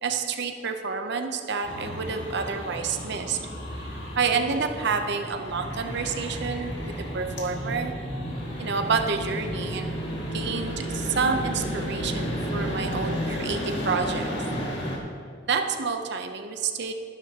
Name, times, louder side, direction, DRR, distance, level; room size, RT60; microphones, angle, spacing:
voice 1, 0.0-3.4 3.8-3.9 4.2-7.9 8.6-9.9 10.3-14.3 15.5-16.9, right 5 dB, 65° right, 6 dB, 0.7 m, -29 dB
sound 1, 1.6-15.0, equal, 65° left, 2.1 m, -34 dB
sound 2, 5.5-13.2, right 1 dB, 20° left, 1.2 m, -34 dB
13.0 x 12.0 x 2.9 m, 2.3 s
head